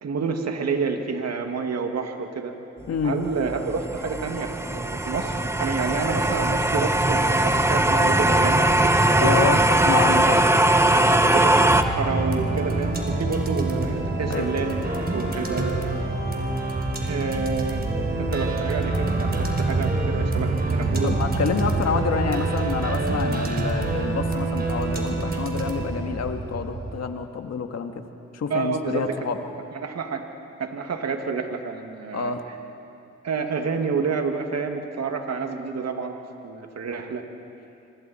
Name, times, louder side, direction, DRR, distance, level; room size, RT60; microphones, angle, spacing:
voice 1, 0.0-2.5 3.0-9.4 11.0-15.7 17.0-17.9 18.2-21.2 28.5-29.1 29.7-30.2 30.6-32.3 33.2-36.2 36.4-37.2, right 5 dB, 60° right, 4 dB, 2.4 m, -29 dB
sound 1, 3.0-11.8, right 1 dB, 10° right, 1.1 m, -20 dB
voice 2, 9.2-10.5 14.3-14.5 21.0-28.0 28.3-29.4 32.1-32.4, left 6 dB, 60° left, 5 dB, 1.9 m, -27 dB
sound 2, 11.7-27.0, right 2 dB, 35° right, 3.5 m, -26 dB
26.0 x 25.5 x 4.5 m, 2.7 s
cardioid pair, 65°, 29 cm